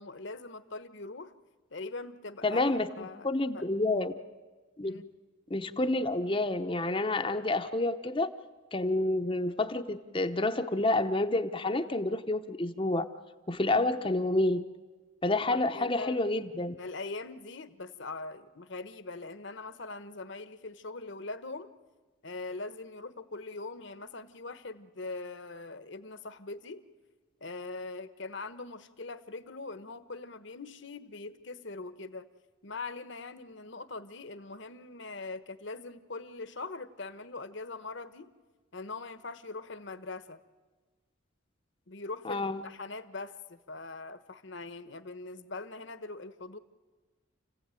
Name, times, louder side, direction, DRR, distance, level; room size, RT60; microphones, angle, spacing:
voice 1, 0.0-1.4 1.7-3.3 3.5-3.7 4.8-5.1 15.5-16.2 16.8-21.7 22.2-26.9 27.4-32.3 32.6-38.4 38.7-40.4 41.9-46.6, left 3 dB, 60° left, 12 dB, 1.1 m, -42 dB
voice 2, 2.4-4.1 4.8-5.0 5.5-8.3 8.7-13.1 13.5-14.6 15.2-16.7 42.2-42.6, left 2 dB, 25° left, 7 dB, 0.8 m, -29 dB
29.5 x 16.0 x 9.1 m, 1.3 s
head